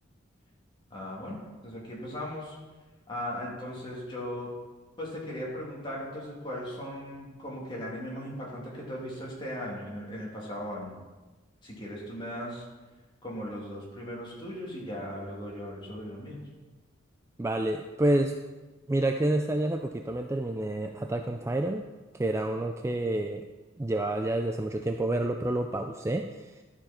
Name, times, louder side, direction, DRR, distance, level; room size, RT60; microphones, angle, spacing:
voice 1, 0.9-2.5 3.1-4.5 5.0-11.0 11.6-12.6 13.2-16.4, equal, 25° left, -4 dB, 2.8 m, -38 dB
voice 2, 17.4-18.4 18.9-21.8 22.1-23.4 23.8-26.5, right 1 dB, 15° right, 5 dB, 0.3 m, -28 dB
12.0 x 7.0 x 4.3 m, 1.2 s
head